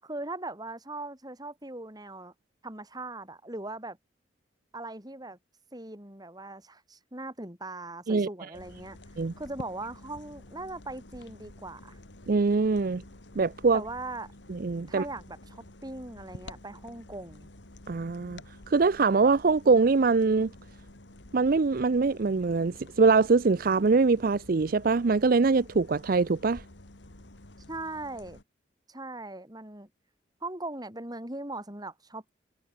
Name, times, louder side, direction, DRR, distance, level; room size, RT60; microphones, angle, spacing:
voice 1, 0.0-2.3 2.6-4.0 4.7-5.4 5.7-9.0 9.4-12.0 13.7-14.3 14.9-17.5 27.7-28.4 28.9-29.9 30.4-32.3, right 2 dB, 20° right, 6.7 m, -39 dB
sound 1, 8.5-28.4, left 1 dB, 80° left, 2.6 m, -50 dB
voice 2, 12.3-13.0 13.4-13.8 14.5-15.0 17.9-18.4 18.7-20.5 21.3-26.6, right 4 dB, 50° right, 0.5 m, -23 dB
head